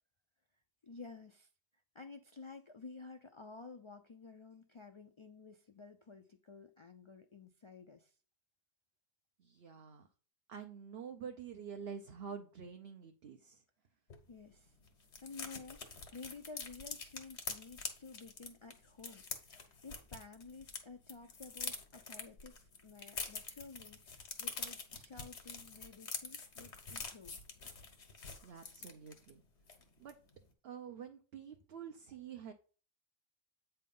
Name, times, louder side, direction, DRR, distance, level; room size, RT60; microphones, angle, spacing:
voice 1, 0.8-1.5 1.9-8.1 14.3-14.7 15.2-22.5 22.8-27.4, left 4 dB, 50° left, 0.3 m, -53 dB
voice 2, 9.4-10.1 10.5-13.6 28.4-29.4 30.0-30.1 30.6-32.5, right 7 dB, 65° right, 0.9 m, -48 dB
sound 1, 14.1-14.2 14.5-14.6 14.8-20.8 21.1-29.3 29.7-29.8 30.1-30.3, left 4 dB, 80° left, 1.4 m, -45 dB
8.4 x 3.4 x 5.3 m
omnidirectional pair, 1.1 m